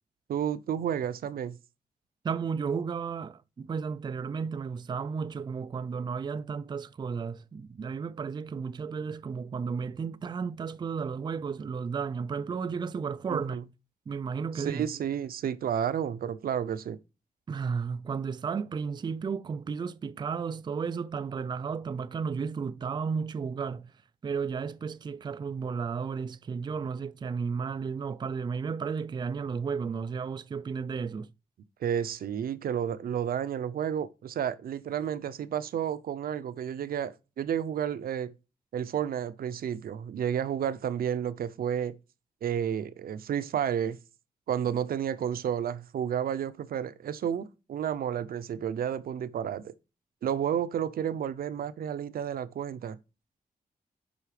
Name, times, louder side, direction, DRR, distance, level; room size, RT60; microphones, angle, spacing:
voice 1, 0.3-1.6 13.3-13.6 14.6-17.0 31.8-38.3 38.7-42.0 42.4-44.0 44.5-49.7 50.2-53.0, right 9 dB, 85° right, 0.6 m, -31 dB
voice 2, 2.2-13.6 14.1-14.9 17.5-23.9 24.2-31.3, right 5 dB, 30° right, 0.4 m, -33 dB
8.1 x 5.6 x 5.0 m
wide cardioid pair, 150°, 15 cm